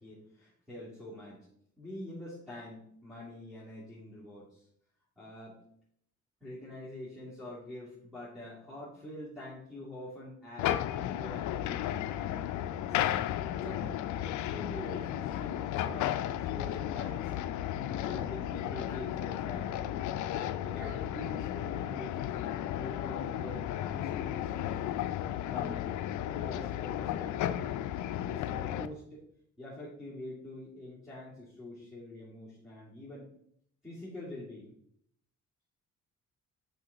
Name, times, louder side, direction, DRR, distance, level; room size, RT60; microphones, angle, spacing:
voice 1, 0.0-1.5 1.8-4.7 5.2-5.6 6.4-12.3 12.7-13.0 13.5-17.6 17.9-20.0 20.6-24.7 25.5-26.0 26.2-27.7 28.3-29.2 29.6-33.3 33.8-34.7, left 1 dB, ahead, -11 dB, 2.7 m, -45 dB
sound 1, 10.6-28.9, left 11 dB, 75° left, 0.5 m, -34 dB
6.2 x 5.2 x 4.1 m, 0.68 s
cardioid pair, 90°, 30 cm